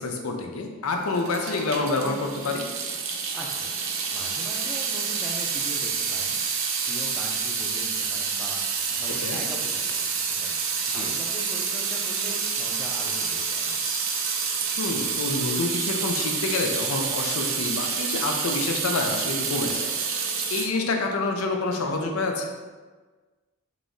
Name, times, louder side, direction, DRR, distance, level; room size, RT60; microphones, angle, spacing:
voice 1, 0.0-2.7 9.2-9.4 10.9-11.1 14.8-19.9 20.5-22.5, left 3 dB, 75° left, 3 dB, 0.6 m, -27 dB
Water tap faucet / Sink (filling or washing) / Drip, 1.1-20.7, right 5 dB, 60° right, 0.5 m, -28 dB
voice 2, 3.3-3.7 4.1-6.4 6.8-8.6 8.9-10.1 10.4-10.6 10.9-13.7, equal, ahead, -3 dB, 0.5 m, -40 dB
5.3 x 3.0 x 2.6 m, 1.4 s
head